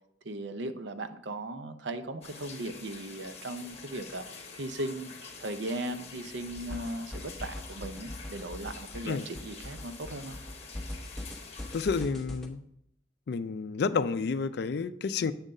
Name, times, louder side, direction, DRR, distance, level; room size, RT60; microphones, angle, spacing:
voice 1, 0.2-4.2 4.6-5.1 5.4-10.4, right 1 dB, 70° right, 9 dB, 0.6 m, -37 dB
sound 1, 2.2-12.0, left 5 dB, 35° left, 1.0 m, -47 dB
sound 2, 6.5-12.5, left 1 dB, ahead, 0.8 m, -41 dB
voice 2, 11.7-12.6 13.3-15.3, left 5 dB, 60° left, 13 dB, 0.4 m, -30 dB
7.2 x 3.8 x 5.3 m, 0.74 s
head